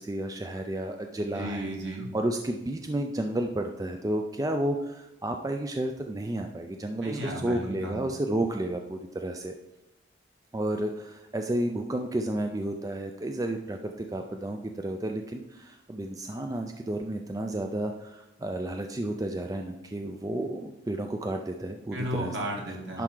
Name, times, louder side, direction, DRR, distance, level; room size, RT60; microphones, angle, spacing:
voice 1, 0.0-1.7 2.1-9.6 10.5-22.4 22.9-23.0, right 1 dB, 20° right, 4 dB, 0.4 m, -31 dB
voice 2, 1.3-2.1 7.0-8.1 21.9-23.0, right 1 dB, 65° right, -1 dB, 2.0 m, -34 dB
10.5 x 4.5 x 3.8 m, 0.92 s
head